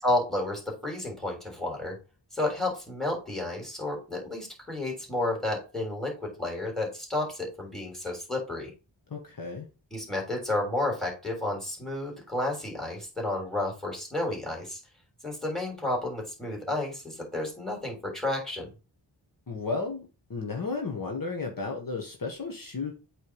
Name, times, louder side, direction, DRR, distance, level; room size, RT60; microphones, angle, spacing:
voice 1, 0.0-2.0 2.3-8.7 9.9-14.8 15.2-18.7, left 2 dB, ahead, 0 dB, 3.3 m, -31 dB
voice 2, 9.1-9.7 19.5-23.0, left 4 dB, 45° left, 1 dB, 1.4 m, -33 dB
8.2 x 3.5 x 4.7 m, 0.31 s
wide cardioid pair, 105°, 45 cm